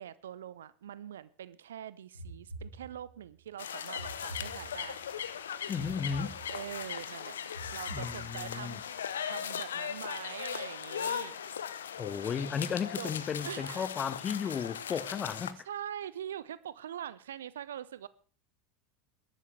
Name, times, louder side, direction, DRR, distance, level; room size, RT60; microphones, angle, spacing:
voice 1, 0.0-5.0 6.5-8.9 9.2-11.4 13.0-13.1 13.4-13.9 14.4-14.6 15.7-18.1, right 10 dB, 70° right, 0.6 m, -43 dB
sound 1, 2.1-3.3 4.0-5.1 5.7-6.9 7.5-8.7, right 2 dB, 90° right, 2.1 m, -46 dB
sound 2, 3.6-15.5, left 8 dB, 70° left, 0.8 m, -38 dB
voice 2, 5.7-6.4 7.9-8.8 12.0-15.7, left 7 dB, 30° left, 0.8 m, -34 dB
21.0 x 12.0 x 3.3 m
figure-of-eight pair, 75°, 0 cm